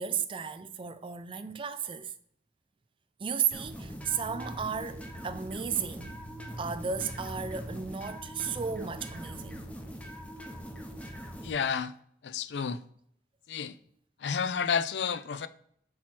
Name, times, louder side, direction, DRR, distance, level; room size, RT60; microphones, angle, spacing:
voice 1, 0.0-2.1 3.2-6.2 6.6-9.6, right 6 dB, 30° right, 0.4 m, -34 dB
sound 1, 3.5-11.5, equal, 10° left, 0.8 m, -43 dB
sound 2, 3.5-9.7, right 2 dB, 90° right, 0.8 m, -47 dB
voice 2, 11.4-11.9 12.2-12.8 13.5-13.7 14.2-15.5, left 6 dB, 85° left, 0.4 m, -30 dB
6.0 x 4.6 x 4.3 m
head